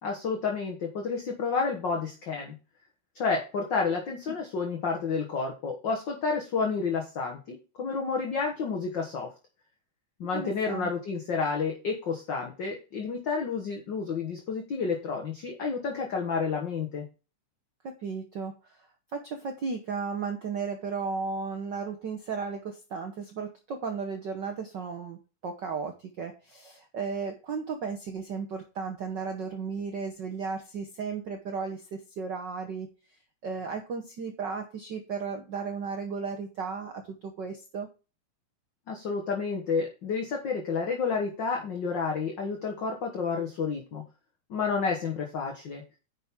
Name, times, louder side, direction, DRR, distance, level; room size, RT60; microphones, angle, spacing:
voice 1, 0.0-2.6 3.1-9.3 10.2-17.1 38.9-44.0 44.5-45.8, left 5 dB, 45° left, 1 dB, 1.7 m, -30 dB
voice 2, 10.3-10.9 17.8-18.8 19.1-32.9 33.4-37.9, right 5 dB, 65° right, 4 dB, 1.1 m, -35 dB
10.0 x 5.9 x 3.7 m, 0.32 s
omnidirectional pair, 3.4 m